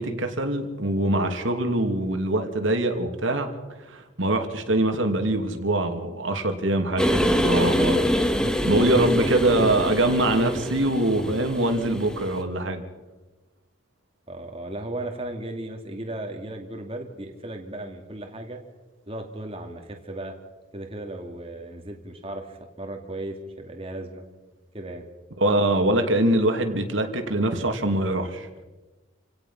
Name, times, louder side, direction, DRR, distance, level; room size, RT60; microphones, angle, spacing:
voice 1, 0.0-3.5 3.9-8.0 8.7-12.8 25.4-28.5, right 1 dB, 75° right, 5 dB, 2.7 m, -23 dB
sound 1, 7.0-12.4, equal, 5° left, 1.7 m, -25 dB
voice 2, 8.4-9.8 14.3-18.6 19.1-20.3 20.7-24.2 24.7-25.1, right 1 dB, 30° right, 3 dB, 2.4 m, -35 dB
28.0 x 17.5 x 5.8 m, 1.2 s
head